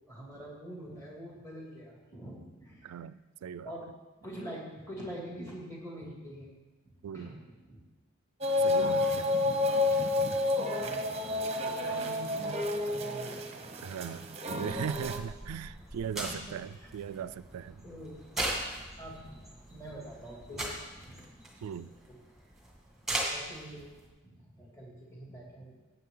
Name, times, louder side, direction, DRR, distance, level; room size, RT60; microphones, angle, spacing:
voice 1, 0.1-3.0 3.6-3.8 4.2-6.5 7.1-7.4 7.6-7.8 10.8-14.2 14.6-14.9 16.1-16.9 17.8-18.2 19.0-19.4 19.7-20.8 21.0-21.2 22.1-22.2 23.3-25.7, equal, 15° left, -3 dB, 2.4 m, -45 dB
voice 2, 2.8-3.7 7.0-7.3 8.6-9.3 13.8-17.8 21.6-22.0, right 8 dB, 85° right, 16 dB, 0.3 m, -39 dB
sound 1, 8.4-15.2, left 2 dB, 30° right, 0.7 m, -30 dB
sound 2, 14.7-24.1, right 1 dB, ahead, 1.8 m, -40 dB
16.0 x 8.2 x 3.8 m, 1.2 s
head